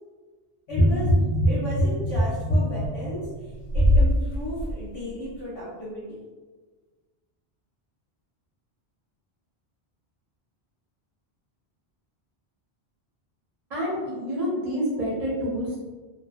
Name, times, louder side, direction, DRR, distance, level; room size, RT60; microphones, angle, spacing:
sound 1, 0.7-4.1 4.6-4.7, equal, 75° left, 0.8 m, -22 dB
voice 1, 0.7-6.2, equal, 40° left, -9 dB, 0.4 m, -34 dB
voice 2, 13.7-15.8, equal, 45° right, -6 dB, 0.6 m, -28 dB
2.4 x 2.1 x 2.4 m, 1.3 s
omnidirectional pair, 1.1 m